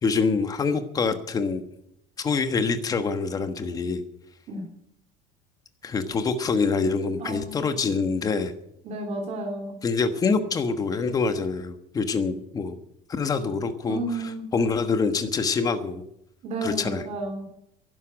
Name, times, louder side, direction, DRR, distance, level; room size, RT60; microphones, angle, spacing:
voice 1, 0.0-1.6 2.2-4.0 5.8-8.5 9.8-12.8 13.1-16.0 16.6-17.0, left 4 dB, 25° left, 9 dB, 1.3 m, -25 dB
voice 2, 7.2-7.6 8.8-9.8 13.9-14.5 16.4-17.4, right 2 dB, 45° right, 1 dB, 3.2 m, -32 dB
11.5 x 11.0 x 8.8 m, 0.78 s
cardioid pair, 150°, 16 cm